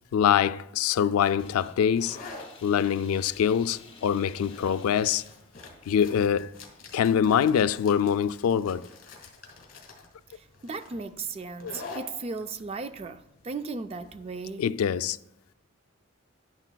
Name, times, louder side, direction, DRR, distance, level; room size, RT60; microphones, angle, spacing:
voice 1, 0.1-2.2 2.6-5.2 5.9-6.6 6.9-8.9 11.6-11.7 14.6-15.2, left 8 dB, 85° left, 0.3 m, -24 dB
sound 1, 1.1-14.5, left 3 dB, 45° left, 1.9 m, -47 dB
sound 2, 1.2-6.2, left 4 dB, 25° left, 1.3 m, -53 dB
voice 2, 10.3-14.7, right 4 dB, 30° right, 0.3 m, -36 dB
11.0 x 9.9 x 2.2 m
head